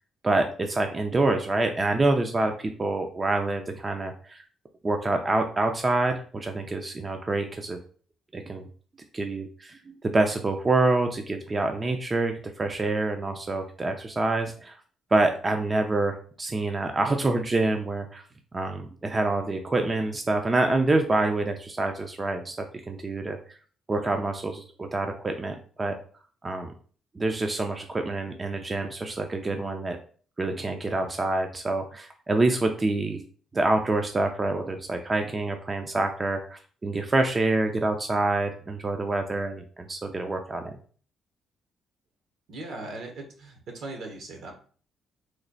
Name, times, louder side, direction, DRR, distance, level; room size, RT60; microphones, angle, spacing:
voice 1, 0.2-4.4 4.8-7.8 8.3-8.7 9.1-14.8 15.1-18.2 18.5-23.6 23.9-26.0 26.4-26.7 27.2-30.0 30.4-33.2 33.5-40.8, right 2 dB, 25° right, 5 dB, 0.4 m, -26 dB
voice 2, 42.5-44.5, right 2 dB, 75° right, 3 dB, 1.0 m, -39 dB
3.1 x 2.2 x 3.9 m, 0.43 s
cardioid pair, 90°, 0 cm